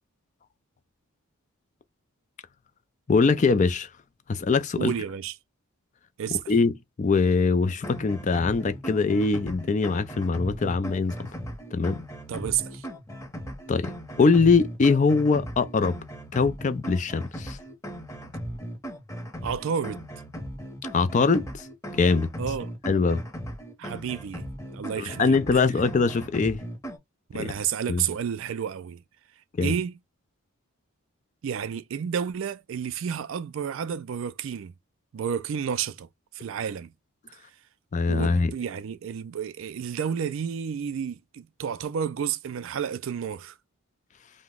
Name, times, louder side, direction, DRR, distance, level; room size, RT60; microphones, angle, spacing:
voice 1, 3.1-3.9 4.3-4.9 6.5-11.3 11.7-12.0 13.7-13.9 14.2-16.0 16.3-17.6 20.9-21.7 21.9-22.3 22.8-23.2 25.0-26.6 27.3-27.5 27.9-28.0 29.6-29.7 37.9-38.5, left 4 dB, 35° left, 0.3 m, -22 dB
voice 2, 4.8-5.3 6.2-6.4 12.3-12.8 19.4-20.1 22.4-22.7 23.8-25.4 27.3-29.0 29.6-29.9 31.4-34.7 35.1-36.1 36.3-36.9 38.1-43.5, right 7 dB, 65° right, 0.3 m, -31 dB
sound 1, 7.6-27.0, equal, 15° left, 0.8 m, -38 dB
2.8 x 2.1 x 3.5 m
head